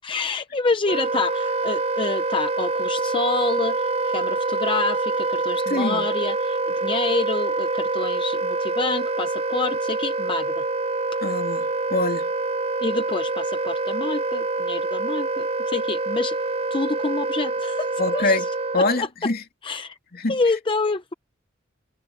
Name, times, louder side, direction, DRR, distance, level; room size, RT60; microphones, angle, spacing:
voice 1, 0.0-10.6 12.8-16.4 16.7-18.5 18.8-19.1 19.6-20.0 20.3-21.1, left 3 dB, 25° left, 0.6 m, -27 dB
Wind instrument woodwind instrument, 0.8-19.1, right 3 dB, 30° right, 0.5 m, -26 dB
voice 2, 5.7-6.1 11.2-12.3 18.0-18.5 18.7-19.4 20.1-20.4, left 2 dB, 50° left, 2.6 m, -24 dB
head